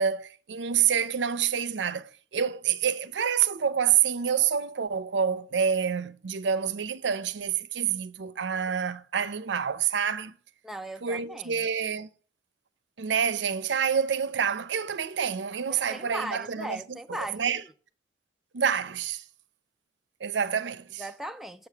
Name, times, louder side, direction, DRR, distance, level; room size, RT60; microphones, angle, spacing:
voice 1, 0.0-10.3 11.0-12.1 13.0-17.6 18.5-19.2 20.2-21.0, right 7 dB, 85° right, 0.6 m, -27 dB
voice 2, 10.6-11.7 15.7-17.5 21.0-21.7, right 1 dB, ahead, 0.3 m, -38 dB
7.0 x 6.7 x 3.3 m
head